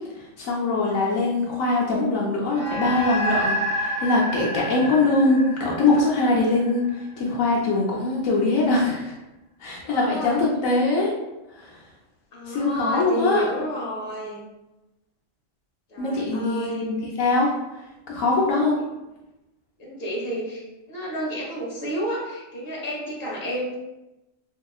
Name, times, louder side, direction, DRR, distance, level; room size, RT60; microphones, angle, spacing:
voice 1, 0.2-9.1 9.6-11.1 11.5-11.8 12.5-13.5 16.0-17.6 18.1-18.8, left 2 dB, 80° left, -3 dB, 1.0 m, -22 dB
sound 1, 2.5-7.2, equal, 45° right, 0.4 m, -29 dB
voice 2, 9.8-10.4 12.3-14.4 15.9-16.9 19.8-20.6 20.9-23.8, equal, 50° left, -5 dB, 1.2 m, -31 dB
3.5 x 2.8 x 2.3 m, 0.98 s
omnidirectional pair, 1.4 m